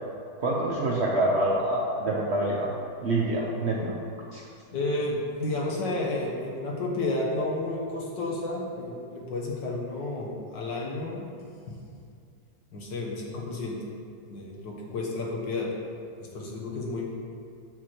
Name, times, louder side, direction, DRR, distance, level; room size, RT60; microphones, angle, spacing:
voice 1, 0.4-2.7 3.0-4.0 4.3-4.4, right 1 dB, 55° right, -3 dB, 0.7 m, -26 dB
voice 2, 4.7-11.2 12.7-13.8 14.3-15.7 16.3-17.0, left 2 dB, 85° left, -2 dB, 1.8 m, -31 dB
6.3 x 5.9 x 4.5 m, 2.3 s
omnidirectional pair, 1.9 m